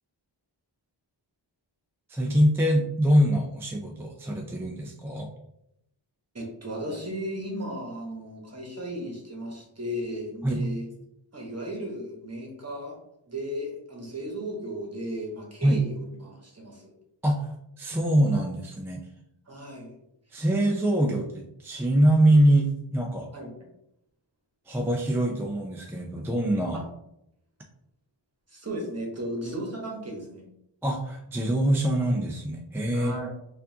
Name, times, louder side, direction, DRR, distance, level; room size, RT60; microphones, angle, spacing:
voice 1, 2.1-5.3 10.4-10.6 15.6-15.8 17.2-17.5 17.8-19.1 20.3-23.3 24.7-26.8 30.8-33.2, right 1 dB, 5° right, 1 dB, 0.3 m, -24 dB
voice 2, 6.3-10.9 11.3-13.0 13.3-16.9 19.5-19.9 23.3-23.7 28.5-30.4 32.9-33.3, equal, 35° right, -1 dB, 1.1 m, -35 dB
4.5 x 2.6 x 2.7 m, 0.81 s
wide cardioid pair, 75°, 47 cm